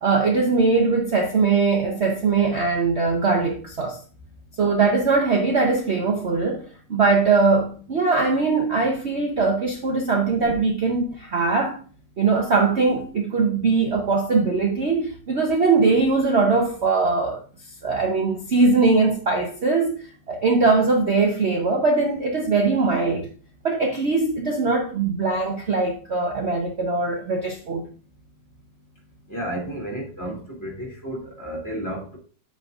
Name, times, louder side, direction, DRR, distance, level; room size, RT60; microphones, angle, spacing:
voice 1, 0.0-4.0 4.6-6.6 6.9-11.8 12.2-17.4 17.8-20.0 20.3-23.3 23.6-27.8, right 4 dB, 50° right, 0.9 m, -21 dB
voice 2, 29.3-32.2, right 1 dB, 10° left, 2.4 m, -32 dB
8.1 x 7.8 x 2.4 m
omnidirectional pair, 1.9 m